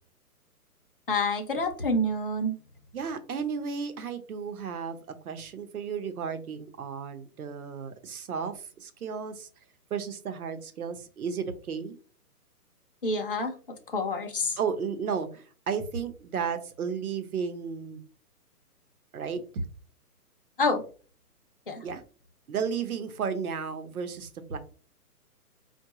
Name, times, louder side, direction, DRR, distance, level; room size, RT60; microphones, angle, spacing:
voice 1, 1.1-2.6 13.0-13.5 13.9-14.6 20.6-20.8 21.7-21.8, left 2 dB, 40° left, 3 dB, 0.5 m, -27 dB
voice 2, 2.9-5.0 5.2-9.5 9.9-11.9 14.6-18.0 19.1-19.6 21.8-22.0 22.5-24.6, right 6 dB, 65° right, 9 dB, 0.9 m, -33 dB
4.6 x 2.3 x 2.9 m, 0.38 s
hypercardioid pair, 175°, 46 cm